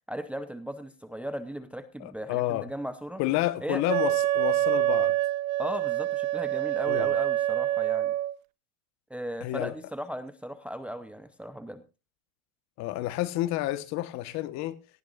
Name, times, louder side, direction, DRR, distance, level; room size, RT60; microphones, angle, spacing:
voice 1, 0.1-3.2 3.6-3.8 5.6-8.1 9.1-11.8, equal, 5° right, 0.7 m, -37 dB
voice 2, 2.0-2.7 3.2-5.2 6.9-7.1 9.4-9.7 12.8-14.8, left 16 dB, 45° left, 1.3 m, -30 dB
Wind instrument woodwind instrument, 3.9-8.4, right 13 dB, 80° right, 0.9 m, -26 dB
18.5 x 15.0 x 2.5 m
supercardioid pair, 135°, 39 cm